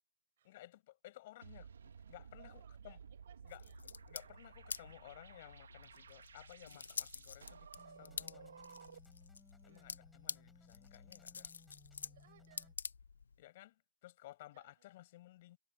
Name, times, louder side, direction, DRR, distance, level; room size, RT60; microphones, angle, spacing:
voice 1, 0.4-1.7 2.1-3.0 3.4-8.5 9.6-11.5 13.4-15.6, left 16 dB, 30° left, 6.6 m, -57 dB
sound 1, 1.4-9.2, right 6 dB, 65° right, 2.1 m, -56 dB
voice 2, 2.4-3.8 9.6-10.0 12.0-12.7 14.5-14.9, right 11 dB, 40° right, 6.3 m, -67 dB
sound 2, 3.5-13.4, left 5 dB, 80° left, 1.2 m, -49 dB
sound 3, 7.8-12.7, left 3 dB, 5° left, 5.2 m, -64 dB
hypercardioid pair, 165°, 0 cm